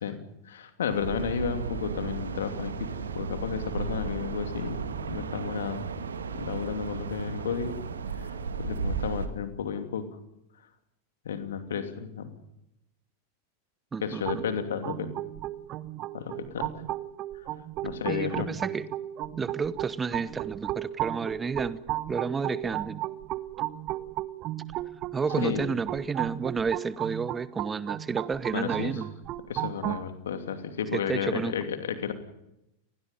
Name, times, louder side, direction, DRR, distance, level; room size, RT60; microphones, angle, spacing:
voice 1, 0.0-4.8 5.1-5.8 6.3-7.8 8.2-8.3 8.6-10.1 11.2-12.3 14.0-15.1 16.1-16.7 17.8-18.5 25.4-25.7 28.5-28.9 29.5-32.1, left 7 dB, 65° left, 7 dB, 2.8 m, -32 dB
sound 1, 0.9-9.3, right 5 dB, 70° right, 2.0 m, -34 dB
voice 2, 13.9-14.4 18.1-18.9 19.4-21.8 22.1-23.0 25.1-29.1 30.9-31.6, right 5 dB, 15° right, 18 dB, 1.1 m, -31 dB
sound 2, 14.3-30.0, right 15 dB, 35° right, 1.1 m, -35 dB
29.5 x 20.0 x 5.5 m, 0.86 s
figure-of-eight pair, 90°, 0 cm